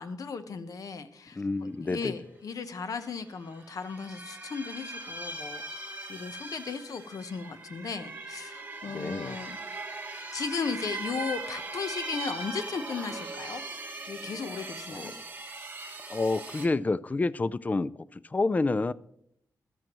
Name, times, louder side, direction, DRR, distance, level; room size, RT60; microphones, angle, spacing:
voice 1, 0.0-9.6 10.3-13.6 14.1-15.1, left 5 dB, 65° left, 10 dB, 0.9 m, -36 dB
voice 2, 1.3-2.1 8.9-9.4 14.9-15.2 16.1-18.9, left 3 dB, 25° left, 18 dB, 0.3 m, -29 dB
sound 1, 2.8-3.0 3.3-16.7, right 2 dB, 25° right, 2.1 m, -40 dB
14.0 x 13.0 x 3.0 m, 0.73 s
wide cardioid pair, 110°, 6 cm